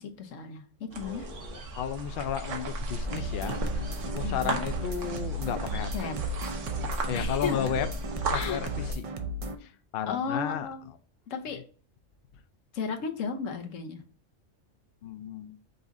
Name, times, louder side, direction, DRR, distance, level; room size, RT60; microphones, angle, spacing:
voice 1, 0.0-1.3 4.2-4.6 5.9-6.1 7.1-7.8 8.3-8.6 10.1-10.8 11.3-11.6 12.7-14.0, left 5 dB, 90° left, 6 dB, 1.1 m, -34 dB
sound 1, 0.9-8.9, right 2 dB, 75° right, 1.1 m, -35 dB
voice 2, 1.0-5.9 7.1-7.9 8.2-9.0 9.6-10.7 11.5-11.6 15.0-15.6, left 9 dB, 60° left, 9 dB, 0.6 m, -34 dB
sound 2, 3.1-9.6, right 1 dB, 55° right, 0.3 m, -35 dB
5.4 x 2.4 x 3.9 m, 0.41 s
omnidirectional pair, 1.3 m